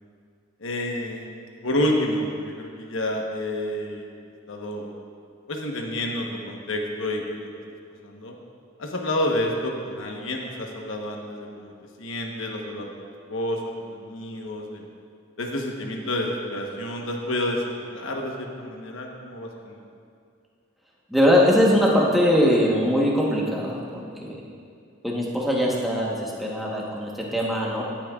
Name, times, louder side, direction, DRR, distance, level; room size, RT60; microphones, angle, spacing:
voice 1, 0.6-1.3 1.6-4.1 4.5-4.9 5.5-7.5 8.0-8.3 8.8-11.7 12.0-12.9 13.3-14.8 15.4-19.8, left 1 dB, 85° left, 1 dB, 1.1 m, -29 dB
voice 2, 21.1-24.4 25.0-27.8, equal, ahead, -4 dB, 1.1 m, -21 dB
13.5 x 8.7 x 2.4 m, 2.3 s
head